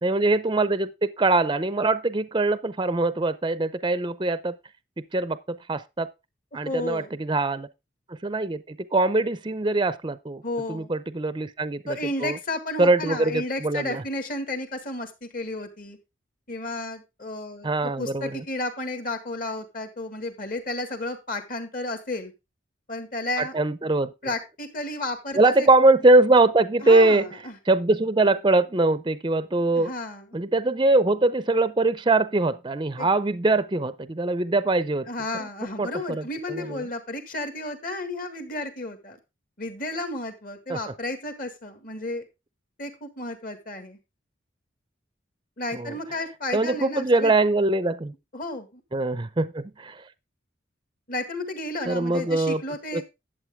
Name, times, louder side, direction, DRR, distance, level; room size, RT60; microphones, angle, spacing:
voice 1, 0.0-4.5 5.1-6.1 6.5-7.7 8.1-10.4 10.7-12.4 12.8-14.0 17.6-18.4 23.4-24.1 25.3-27.3 27.7-29.9 30.3-35.1 35.4-35.5 35.8-36.8 40.7-40.8 45.7-46.0 46.5-48.1 48.9-50.0 51.9-52.6 52.9-53.0, right 2 dB, 25° right, 0.5 m, -22 dB
voice 2, 6.5-7.1 10.4-10.9 11.9-16.0 16.5-22.3 22.9-23.5 24.2-25.7 26.8-27.6 29.7-30.3 33.0-33.1 35.1-39.2 39.6-42.3 42.8-44.0 45.6-47.3 48.3-48.8 51.1-53.0, left 2 dB, 45° left, 1.8 m, -32 dB
11.5 x 7.9 x 3.5 m
head